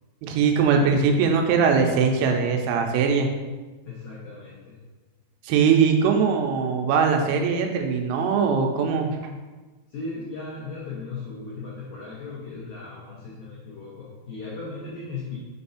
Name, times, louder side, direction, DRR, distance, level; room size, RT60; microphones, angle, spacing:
voice 1, 0.2-3.3 5.4-9.2, right 5 dB, 90° right, 3 dB, 3.3 m, -21 dB
voice 2, 3.9-4.8 9.9-15.4, left 3 dB, 90° left, -7 dB, 1.8 m, -37 dB
7.4 x 2.6 x 5.6 m, 1.2 s
omnidirectional pair, 5.7 m